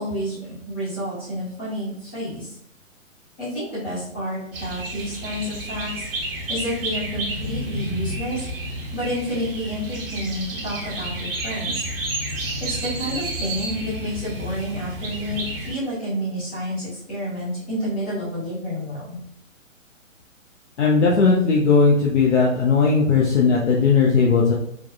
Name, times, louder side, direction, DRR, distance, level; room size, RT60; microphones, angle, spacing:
voice 1, 0.0-2.5 3.4-5.9 6.3-8.4 8.9-11.8 12.6-19.2, equal, 10° left, -11 dB, 0.4 m, -29 dB
sound 1, 4.5-15.7, right 1 dB, 45° right, 0.8 m, -30 dB
voice 2, 20.8-24.5, left 4 dB, 60° left, -3 dB, 0.6 m, -17 dB
3.4 x 2.1 x 2.2 m, 0.72 s
figure-of-eight pair, 125°, 40 cm